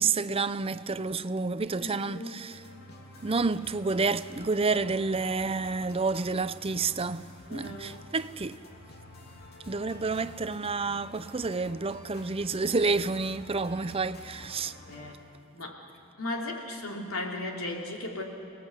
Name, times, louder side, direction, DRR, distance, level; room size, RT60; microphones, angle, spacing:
voice 1, 0.0-2.6 3.2-8.6 9.7-14.7, right 4 dB, 25° right, 0.6 m, -29 dB
voice 2, 1.8-2.4 7.5-8.0 14.9-15.2 15.5-15.8 16.2-18.2, left 2 dB, 85° left, 3.1 m, -36 dB
sound 1, 2.5-15.2, left 1 dB, 50° left, 3.2 m, -49 dB
29.5 x 19.0 x 8.1 m
head